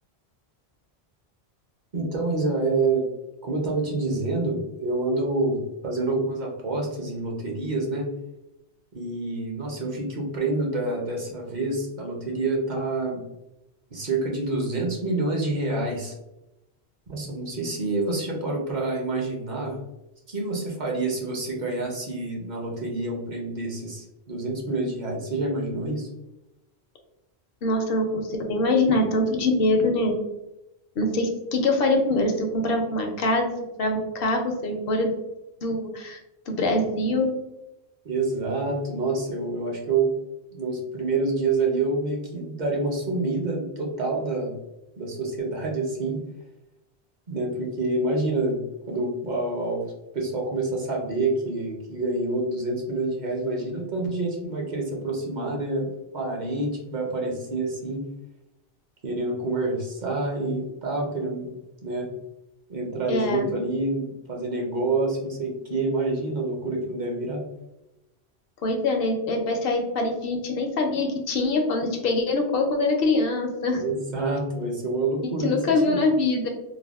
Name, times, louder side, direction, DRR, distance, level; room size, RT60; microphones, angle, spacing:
voice 1, 1.9-3.1 3.4-8.1 8.9-13.2 13.9-16.1 17.1-19.8 20.3-26.1 38.0-40.1 40.5-44.6 45.0-46.2 47.3-48.6 48.9-49.8 50.1-55.9 56.1-58.0 59.0-61.5 61.8-62.1 62.7-67.4 73.7-76.0, right 2 dB, 50° right, -1 dB, 0.7 m, -27 dB
voice 2, 27.6-30.1 31.0-33.5 33.8-35.2 35.6-36.2 36.5-37.4 63.1-63.5 68.6-73.8 75.2-76.5, left 2 dB, 65° left, 3 dB, 0.7 m, -24 dB
3.3 x 2.1 x 2.3 m, 0.92 s
omnidirectional pair, 1.1 m